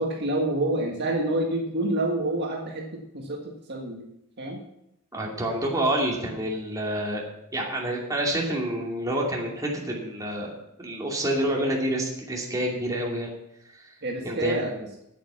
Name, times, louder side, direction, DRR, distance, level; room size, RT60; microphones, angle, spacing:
voice 1, 0.0-3.4 3.7-4.0 4.4-4.6 14.0-14.8, right 1 dB, 50° right, 0 dB, 1.7 m, -27 dB
voice 2, 5.1-7.2 7.5-10.5 10.8-13.4 14.2-14.6, right 1 dB, 15° right, -2 dB, 2.5 m, -28 dB
9.0 x 8.6 x 7.1 m, 0.81 s
head